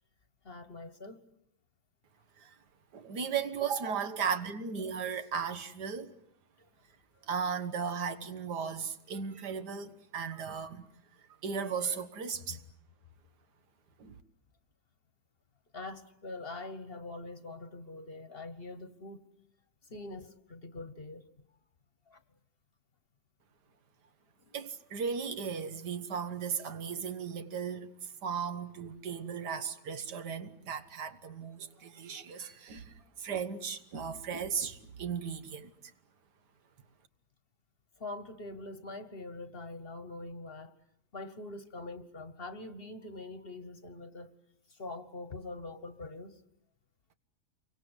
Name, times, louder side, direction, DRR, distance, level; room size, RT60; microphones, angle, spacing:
voice 1, 0.4-1.2 12.4-12.6 15.7-19.2 19.9-21.2 22.1-22.2 38.0-40.7 41.1-44.3 44.8-46.3, left 2 dB, 40° left, 1.3 m, -43 dB
voice 2, 2.9-6.1 7.3-10.9 11.4-12.6 14.0-14.2 24.5-35.7, right 6 dB, 85° right, 1.9 m, -36 dB
28.5 x 24.0 x 8.0 m
omnidirectional pair, 1.7 m